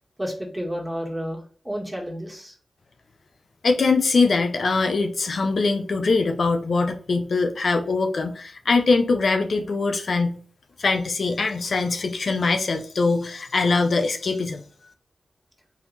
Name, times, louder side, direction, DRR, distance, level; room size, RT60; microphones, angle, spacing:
voice 1, 0.2-2.5, equal, 15° right, -2 dB, 1.8 m, -31 dB
voice 2, 3.6-10.4 10.8-14.6, left 3 dB, 75° left, 5 dB, 0.6 m, -22 dB
3.9 x 2.9 x 4.0 m, 0.42 s
cardioid pair, 50°, 0 cm